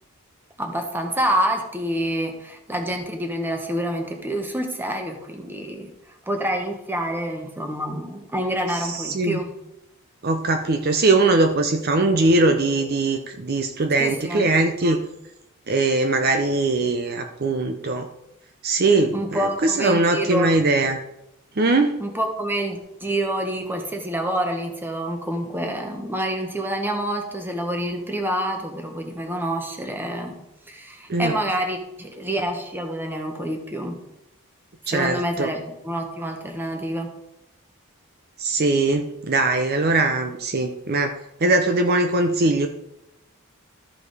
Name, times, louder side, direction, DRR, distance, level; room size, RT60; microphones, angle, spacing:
voice 1, 0.6-5.9 6.3-9.5 14.0-14.5 19.1-20.6 22.0-30.4 30.7-34.0 34.9-37.1, right 1 dB, 10° right, 4 dB, 1.2 m, -27 dB
voice 2, 8.7-9.4 10.2-15.0 15.7-18.1 18.6-21.0 21.6-22.0 31.1-31.4 34.9-35.5 38.4-41.1 41.4-42.7, right 2 dB, 45° right, 6 dB, 0.7 m, -21 dB
13.5 x 5.0 x 4.9 m, 0.86 s
head